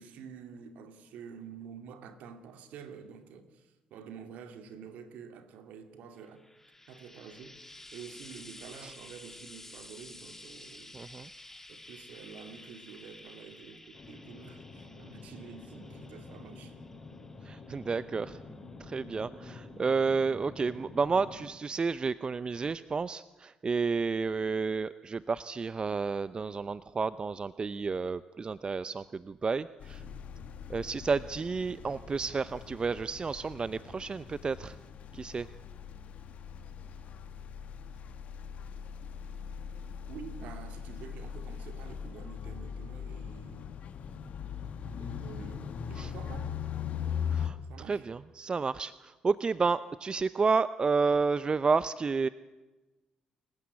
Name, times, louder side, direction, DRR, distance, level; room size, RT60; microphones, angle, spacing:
voice 1, 0.0-6.4 6.9-11.0 11.7-16.8 40.1-43.7 44.9-46.5 47.7-48.1, right 6 dB, 70° right, 2.5 m, -48 dB
Frying (food), 6.2-19.7 20.6-20.7, left 1 dB, 15° left, 2.8 m, -52 dB
voice 2, 10.9-11.3 17.4-30.0 30.7-34.8 35.1-35.5 46.0-46.1 47.3-47.6 47.8-52.3, right 4 dB, 35° right, 0.7 m, -31 dB
sound 1, 13.9-21.5, left 3 dB, 40° left, 5.1 m, -48 dB
sound 2, 29.8-47.5, left 7 dB, 60° left, 2.1 m, -40 dB
27.5 x 15.5 x 8.5 m
hypercardioid pair, 45°, 3 cm